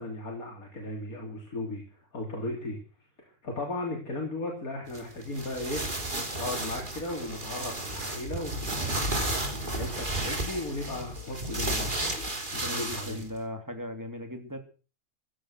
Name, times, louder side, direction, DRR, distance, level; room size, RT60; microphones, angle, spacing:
voice 1, 0.0-2.8 3.2-5.9 6.3-12.2 12.5-13.3, left 2 dB, 85° left, 0 dB, 3.7 m, -36 dB
sound 1, 4.9-13.3, right 2 dB, 35° right, 3.3 m, -33 dB
sound 2, 6.8-12.3, left 4 dB, 50° left, 1.9 m, -42 dB
voice 2, 12.6-14.6, left 1 dB, 15° right, 5 dB, 3.2 m, -38 dB
15.0 x 14.0 x 6.5 m, 0.38 s
omnidirectional pair, 1.5 m